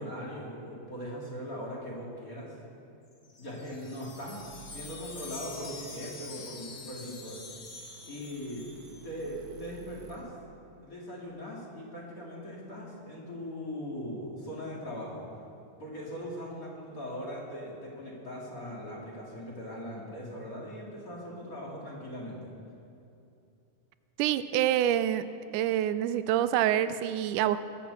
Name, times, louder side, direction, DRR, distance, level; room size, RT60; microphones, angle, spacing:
voice 1, 0.0-2.6 3.4-7.4 8.0-8.7 9.0-10.3 10.8-15.2 15.8-22.5, equal, 30° left, -4 dB, 2.7 m, -40 dB
Wind chime, 3.1-9.3, left 4 dB, 50° left, 2.1 m, -46 dB
sound 1, 4.4-10.2, right 6 dB, 55° right, 1.7 m, -53 dB
voice 2, 24.2-25.3 25.5-27.6, right 11 dB, 90° right, 12 dB, 2.1 m, -26 dB
20.5 x 7.6 x 6.9 m, 2.7 s
omnidirectional pair, 3.5 m